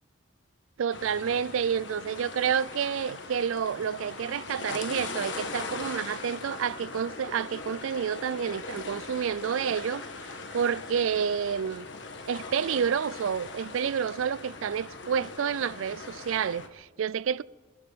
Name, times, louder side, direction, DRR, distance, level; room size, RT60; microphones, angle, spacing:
voice 1, 0.8-11.9 12.2-17.4, right 7 dB, 80° right, 0.4 m, -29 dB
sound 1, 0.9-16.7, left 3 dB, 65° left, 1.4 m, -40 dB
21.5 x 12.0 x 5.2 m
head